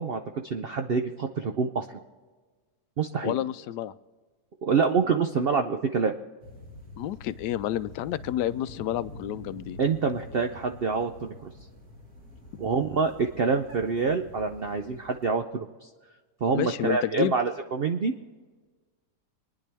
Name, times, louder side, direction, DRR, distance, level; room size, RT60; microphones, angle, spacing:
voice 1, 0.0-2.0 3.0-3.3 4.6-6.1 9.8-11.5 12.6-15.7 16.4-18.1, right 5 dB, 70° right, 6 dB, 0.5 m, -26 dB
voice 2, 3.2-3.9 7.0-9.8 16.5-17.3, left 12 dB, 85° left, 15 dB, 1.2 m, -29 dB
sound 1, 6.4-15.3, left 1 dB, 55° right, 2.5 m, -46 dB
26.0 x 10.0 x 3.4 m, 1.4 s
omnidirectional pair, 1.8 m